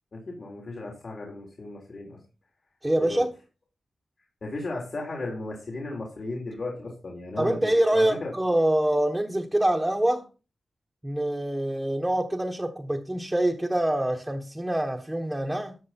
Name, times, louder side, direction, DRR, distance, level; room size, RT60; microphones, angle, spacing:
voice 1, 0.1-2.2 3.0-3.2 4.4-8.3, left 2 dB, 50° left, 3.8 m, -35 dB
voice 2, 2.8-3.3 7.4-10.3 11.0-15.8, right 1 dB, 10° right, 1.2 m, -25 dB
13.5 x 7.8 x 4.3 m
wide cardioid pair, 125°, 0 cm